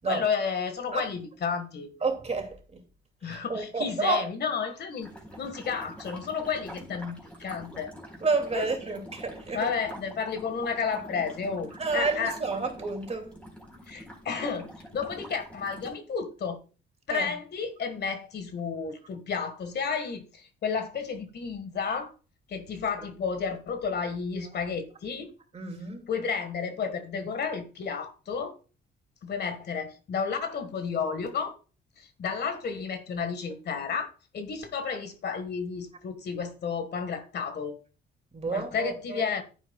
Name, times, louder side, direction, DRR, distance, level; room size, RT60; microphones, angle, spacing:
voice 1, 0.1-1.9 3.2-5.1 5.4-7.9 8.5-8.7 9.5-12.4 13.9-16.6 17.1-22.1 22.5-25.3 26.1-28.5 29.2-31.6 32.0-37.8 38.5-39.4, left 6 dB, 55° left, 1.8 m, -32 dB
voice 2, 2.0-2.8 3.3-4.2 8.2-9.7 11.8-13.3 17.1-17.3 25.5-26.1 38.3-39.3, right 4 dB, 35° right, 2.6 m, -30 dB
sound 1, 5.0-15.9, equal, 5° left, 4.5 m, -45 dB
11.0 x 9.3 x 2.4 m
cardioid pair, 90°, 20 cm